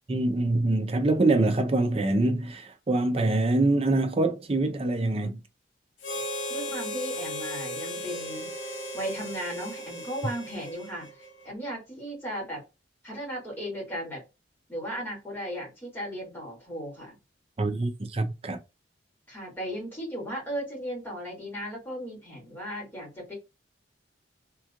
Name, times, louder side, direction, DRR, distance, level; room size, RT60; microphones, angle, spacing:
voice 1, 0.1-5.4 17.6-18.6, right 2 dB, 30° right, 0.5 m, -25 dB
Harmonica, 6.0-11.5, left 1 dB, 90° left, 0.9 m, -36 dB
voice 2, 6.1-8.5 8.9-11.2 11.4-12.6 13.0-14.2 14.7-17.2 19.3-23.3, equal, 10° left, 1.9 m, -36 dB
3.6 x 3.0 x 2.3 m
head